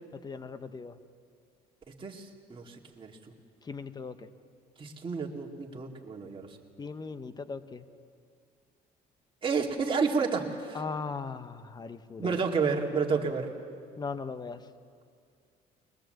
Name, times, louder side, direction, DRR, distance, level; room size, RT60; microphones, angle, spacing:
voice 1, 0.1-1.0 3.6-4.3 6.8-7.9 10.7-12.4 14.0-14.7, left 4 dB, 25° left, 12 dB, 1.0 m, -38 dB
voice 2, 2.0-3.1 4.8-6.5 9.4-10.8 12.2-13.5, right 5 dB, 30° right, 0 dB, 2.3 m, -30 dB
21.5 x 20.0 x 7.8 m, 2.2 s
cardioid pair, 110°, 17 cm